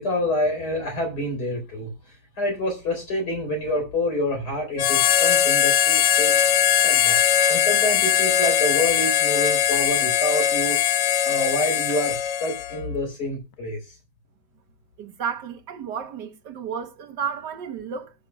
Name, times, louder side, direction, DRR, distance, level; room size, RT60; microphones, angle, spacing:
voice 1, 0.0-1.9 2.4-6.4 6.8-10.8 11.2-13.8, left 1 dB, 65° left, 4.6 m, -27 dB
Harmonica, 4.8-12.8, left 10 dB, 80° left, 1.4 m, -20 dB
voice 2, 15.0-18.1, right 7 dB, 75° right, 1.7 m, -32 dB
19.5 x 6.7 x 2.3 m
omnidirectional pair, 1.9 m